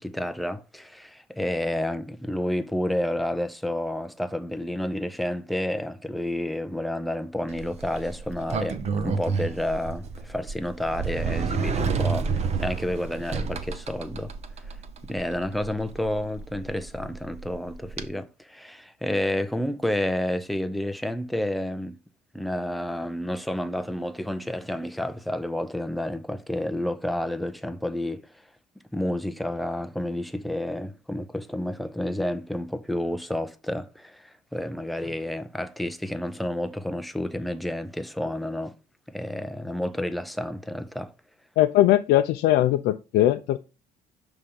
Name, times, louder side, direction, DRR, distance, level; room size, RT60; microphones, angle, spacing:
voice 1, 0.0-14.3 15.1-22.0 22.3-28.2 28.9-38.7 39.1-41.1, left 1 dB, ahead, 0.5 m, -30 dB
Sliding door, 7.5-18.1, right 5 dB, 40° right, 0.7 m, -31 dB
voice 2, 41.6-43.6, left 13 dB, 80° left, 0.4 m, -20 dB
5.6 x 3.5 x 5.1 m
cardioid pair, 110°, 17 cm